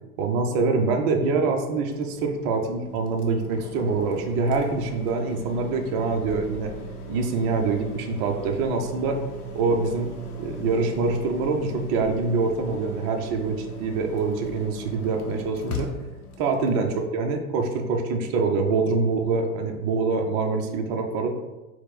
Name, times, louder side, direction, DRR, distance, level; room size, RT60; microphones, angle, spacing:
voice 1, 0.2-6.7 7.1-9.2 9.5-10.1 10.4-15.9 16.4-21.3, right 4 dB, 30° right, 3 dB, 0.4 m, -25 dB
sound 1, 1.9-17.1, right 1 dB, 85° left, 0.7 m, -38 dB
4.1 x 2.1 x 3.9 m, 1.1 s
figure-of-eight pair, 95°, 44 cm